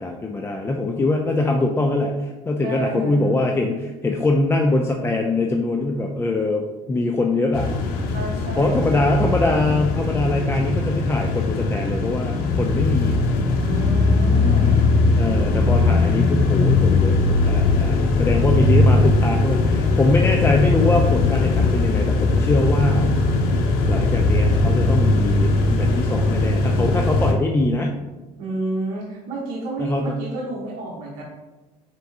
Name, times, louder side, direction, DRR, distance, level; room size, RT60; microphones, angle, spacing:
voice 1, 0.0-7.7 8.6-13.2 15.2-23.2 23.9-28.0 29.8-30.2, left 2 dB, 15° left, 2 dB, 0.3 m, -23 dB
voice 2, 2.6-3.4 8.1-9.4 13.6-15.0 28.4-31.2, right 2 dB, 70° right, -4 dB, 1.0 m, -30 dB
sound 1, 7.5-27.3, left 3 dB, 75° left, 0.6 m, -19 dB
4.4 x 3.5 x 2.7 m, 1.1 s
supercardioid pair, 90°, 15 cm